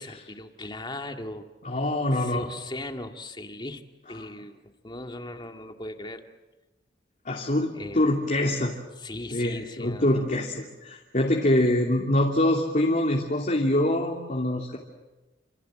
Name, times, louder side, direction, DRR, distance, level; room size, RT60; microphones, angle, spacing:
voice 1, 0.0-1.5 2.1-3.8 4.1-6.2 7.7-8.2 9.0-10.4, left 1 dB, 25° left, 5 dB, 2.1 m, -38 dB
voice 2, 1.6-2.5 7.2-8.7 9.3-14.8, left 1 dB, 45° left, 0 dB, 2.9 m, -24 dB
28.5 x 27.0 x 7.7 m, 1.1 s
head